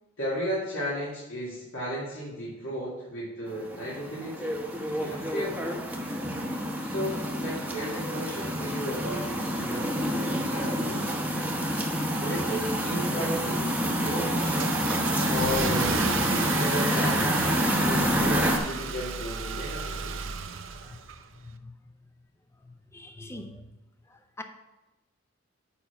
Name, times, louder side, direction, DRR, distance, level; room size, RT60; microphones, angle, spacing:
voice 1, 0.2-4.6 5.0-5.7 6.8-11.2 12.2-14.7 15.3-20.3, equal, 80° left, -8 dB, 2.3 m, -34 dB
sound 1, 3.5-18.6, equal, 5° right, 0.9 m, -28 dB
Car / Engine starting, 13.3-21.5, right 6 dB, 70° right, 0.6 m, -34 dB
voice 2, 20.7-21.0 21.3-21.7 22.6-23.8 24.1-24.4, left 2 dB, 15° left, 6 dB, 0.6 m, -45 dB
7.1 x 5.6 x 5.8 m, 1.0 s
head